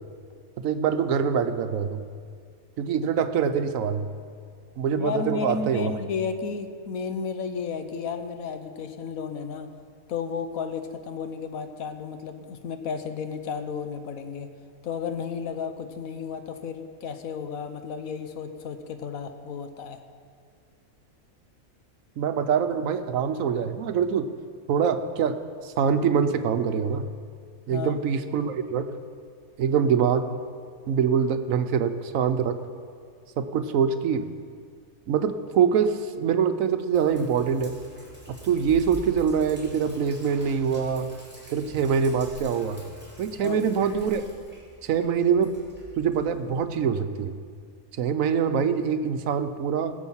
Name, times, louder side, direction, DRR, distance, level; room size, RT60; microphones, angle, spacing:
voice 1, 0.6-2.0 2.8-4.0 4.8-5.9 22.2-24.3 24.7-25.4 25.6-27.0 27.7-28.9 29.6-30.2 30.9-32.6 33.4-34.3 35.1-37.8 38.3-41.1 41.5-42.8 43.2-44.2 44.8-45.5 46.0-47.4 48.0-49.9, right 7 dB, 70° right, 9 dB, 1.1 m, -24 dB
voice 2, 4.9-9.7 10.1-14.5 14.8-20.0 27.7-28.0 43.4-43.6, left 5 dB, 75° left, 8 dB, 1.3 m, -33 dB
Sink (filling or washing), 36.9-46.6, right 1 dB, 5° right, 2.6 m, -45 dB
18.5 x 7.2 x 5.6 m, 2.1 s
omnidirectional pair, 1.5 m